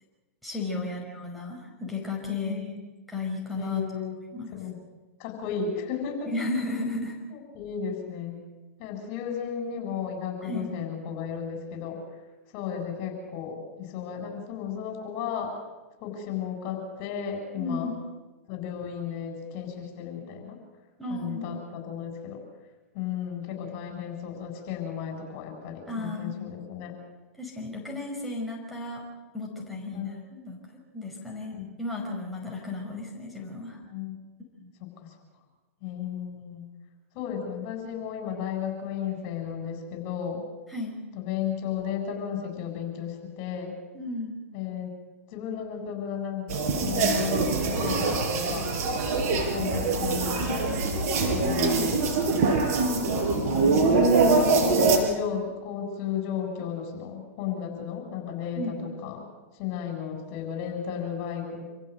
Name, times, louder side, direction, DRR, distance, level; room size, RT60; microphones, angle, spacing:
voice 1, 0.4-2.8 3.1-3.8 4.3-4.5 6.3-7.2 10.4-10.7 17.5-18.0 21.0-21.5 25.9-26.4 27.4-29.0 29.3-33.8 34.6-34.7 40.7-40.9 43.9-44.4 51.4-52.0 58.5-58.8, left 2 dB, ahead, -4 dB, 5.6 m, -34 dB
voice 2, 2.2-2.8 3.6-4.2 4.5-4.8 5.2-6.3 7.3-8.4 8.8-12.0 12.5-15.5 16.0-17.9 18.5-20.6 21.1-22.4 22.9-27.0 29.9-30.1 31.5-31.6 33.9-34.1 35.8-36.6 37.1-40.4 41.1-43.7 44.5-44.9 45.3-48.7 49.5-50.7 51.3-52.0 52.5-52.6 53.3-53.8 54.7-58.7 59.0-59.3 59.6-61.6, left 8 dB, 45° left, 3 dB, 7.6 m, -34 dB
sound 1, 46.5-55.0, right 3 dB, 50° right, 6.2 m, -24 dB
27.5 x 15.5 x 8.0 m, 1.1 s
hypercardioid pair, 115°, 8 cm